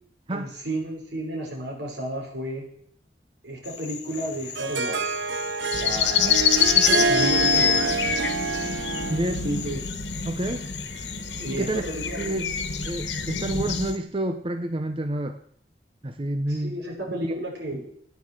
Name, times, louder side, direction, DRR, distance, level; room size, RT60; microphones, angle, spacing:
voice 1, 0.3-2.7 3.4-5.2 5.7-6.4 7.1-7.8 9.4-9.8 11.4-12.4 16.5-17.8, right 1 dB, 75° right, -1 dB, 5.4 m, -32 dB
sound 1, 3.6-14.0, left 8 dB, 65° left, 1.7 m, -41 dB
Harp, 4.2-9.5, right 4 dB, 90° right, 0.7 m, -26 dB
sound 2, 5.7-13.9, left 8 dB, 90° left, 1.4 m, -26 dB
voice 2, 6.7-7.1 9.1-9.4 10.2-10.7 11.4-11.8 12.2-12.5 12.8-15.4 16.0-16.8 17.3-17.4, right 1 dB, 30° right, 7 dB, 0.7 m, -29 dB
14.0 x 9.4 x 7.7 m, 0.66 s
head